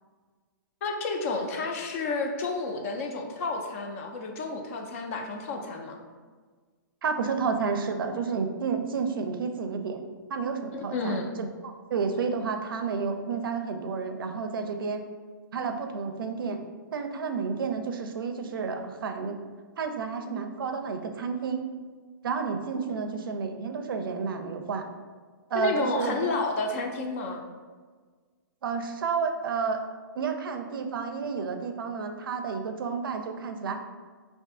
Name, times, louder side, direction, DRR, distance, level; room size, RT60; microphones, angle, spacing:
voice 1, 0.8-6.0 10.7-11.3 22.9-23.1 25.5-27.4, left 3 dB, 40° left, 4 dB, 0.4 m, -31 dB
voice 2, 7.0-10.0 10.3-15.0 15.5-16.6 16.9-19.4 19.8-21.7 22.2-24.9 25.5-26.3 28.6-29.8 30.1-33.8, right 5 dB, 80° right, 6 dB, 0.4 m, -31 dB
2.5 x 2.3 x 3.6 m, 1.5 s
hypercardioid pair, 150°, 11 cm